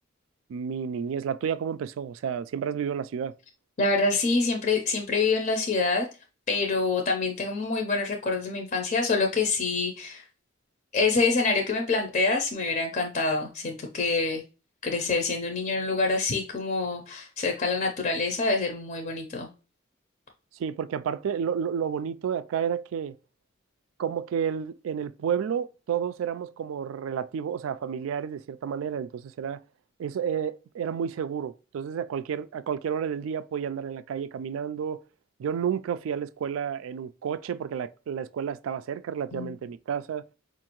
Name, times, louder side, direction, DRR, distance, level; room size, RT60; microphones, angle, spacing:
voice 1, 0.5-3.3 20.6-23.1 24.0-29.6 30.0-35.0 35.4-40.2, right 7 dB, 85° right, 0.3 m, -31 dB
voice 2, 3.8-6.1 6.5-10.3 10.9-14.4 14.8-19.5 39.3-39.5, left 3 dB, 40° left, 0.5 m, -26 dB
4.6 x 2.5 x 2.9 m
head